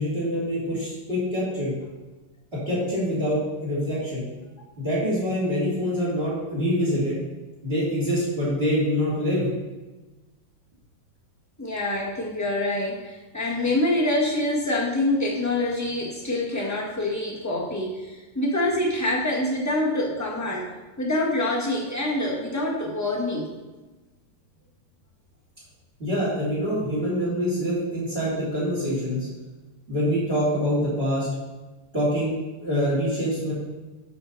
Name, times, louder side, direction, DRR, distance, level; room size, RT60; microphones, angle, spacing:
voice 1, 0.0-1.7 2.7-4.3 4.8-7.2 7.6-9.5 26.0-29.3 29.9-31.3 31.9-33.5, equal, 25° right, -8 dB, 3.5 m, -25 dB
voice 2, 11.6-20.7 21.0-23.5, left 1 dB, 10° left, -3 dB, 1.5 m, -26 dB
12.0 x 5.5 x 4.3 m, 1.2 s
omnidirectional pair, 2.4 m